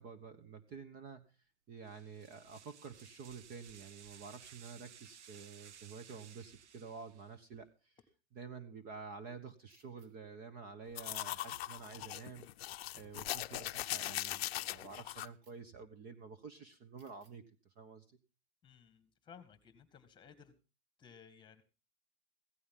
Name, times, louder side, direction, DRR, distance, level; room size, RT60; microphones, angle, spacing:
voice 1, 0.0-1.3 1.7-7.9 8.3-12.5 12.9-17.4 17.8-18.0, right 5 dB, 25° right, 11 dB, 1.2 m, -50 dB
sound 1, 1.8-7.4, right 8 dB, 85° right, 1.2 m, -58 dB
sound 2, 9.7-10.1 11.3-11.8 13.3-13.8 15.2-15.5 17.0-17.3, right 4 dB, 55° right, 3.8 m, -70 dB
sound 3, 11.0-15.3, left 14 dB, 60° left, 0.7 m, -40 dB
voice 2, 18.6-20.5 21.0-21.6, left 7 dB, 15° left, 10 dB, 2.0 m, -58 dB
16.0 x 14.5 x 3.8 m, 0.33 s
hypercardioid pair, 150°, 34 cm